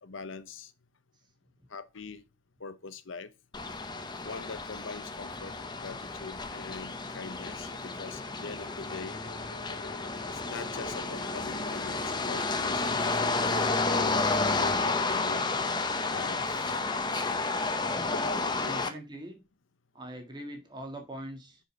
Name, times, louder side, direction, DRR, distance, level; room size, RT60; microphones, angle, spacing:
voice 1, 0.0-0.7 1.7-2.2 2.6-3.3 4.2-5.5 5.8-9.2 10.5-13.1 13.4-15.4 16.1-16.8 18.1-19.0, left 4 dB, 70° left, 0.8 m, -42 dB
sound 1, 3.5-18.9, left 3 dB, 20° left, 0.7 m, -31 dB
sound 2, 8.9-15.3, left 2 dB, 90° left, 2.1 m, -50 dB
voice 2, 18.6-19.4 19.9-21.6, right 1 dB, 20° right, 1.6 m, -42 dB
6.5 x 5.0 x 5.1 m
head